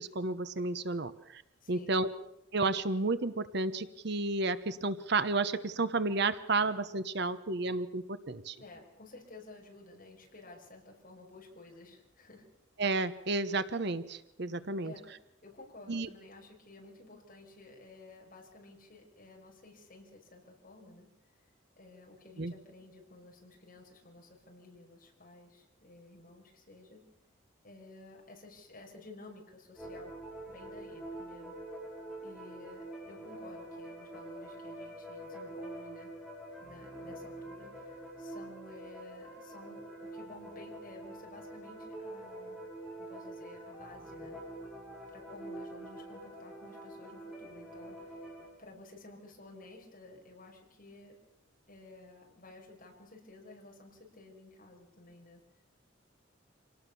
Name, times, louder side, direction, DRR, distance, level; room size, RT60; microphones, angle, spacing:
voice 1, 0.0-1.4 1.7-2.1 2.5-8.6 12.8-14.9 15.9-16.1 22.4-22.5, right 3 dB, 60° right, 12 dB, 1.1 m, -32 dB
voice 2, 1.6-2.0 8.5-12.4 14.8-15.1 15.4-21.1 21.3-21.5 21.8-27.0 27.6-30.1 30.5-31.6 32.2-36.1 36.6-42.6 43.0-44.4 45.1-48.2 48.6-51.2 51.7-55.4, left 2 dB, 45° left, 1 dB, 5.9 m, -53 dB
sound 1, 29.8-48.5, right 1 dB, 5° right, 7.2 m, -46 dB
26.0 x 18.5 x 7.0 m, 0.81 s
head